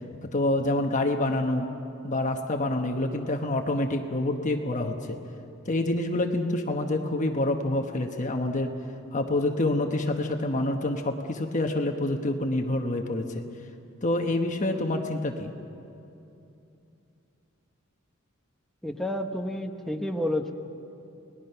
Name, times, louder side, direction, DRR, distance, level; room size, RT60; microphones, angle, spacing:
voice 1, 0.3-1.7 2.0-5.2 5.7-8.7 9.1-13.4 14.0-15.5, left 2 dB, 35° left, 3 dB, 1.2 m, -27 dB
voice 2, 18.8-20.5, left 1 dB, ahead, 3 dB, 1.0 m, -30 dB
29.5 x 20.0 x 5.7 m, 2.8 s
head